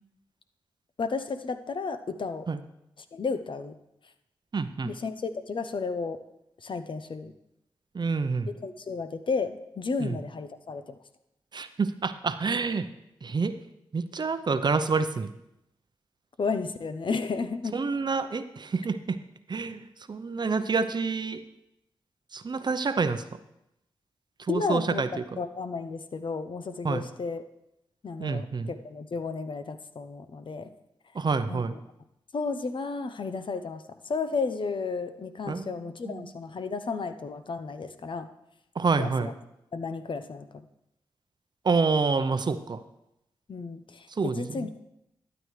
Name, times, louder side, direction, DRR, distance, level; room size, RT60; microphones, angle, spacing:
voice 1, 1.0-2.5 3.1-3.7 4.8-6.2 6.6-7.3 8.4-11.0 16.4-17.8 24.5-25.0 25.4-27.4 28.0-30.7 31.5-31.8 32.3-38.3 39.0-39.3 39.7-40.7 43.5-44.8, left 4 dB, 60° left, 10 dB, 0.8 m, -33 dB
voice 2, 4.5-4.9 7.9-8.5 10.0-10.2 11.5-12.9 13.2-13.6 13.9-15.3 17.7-19.2 19.5-21.4 22.3-23.2 24.5-25.1 26.8-27.0 28.2-28.7 31.1-31.7 35.5-35.7 36.0-36.3 38.8-39.3 41.6-42.8 44.2-44.7, right 4 dB, 50° right, 11 dB, 0.7 m, -27 dB
12.5 x 9.0 x 3.2 m, 0.84 s
cardioid pair, 45°, 10 cm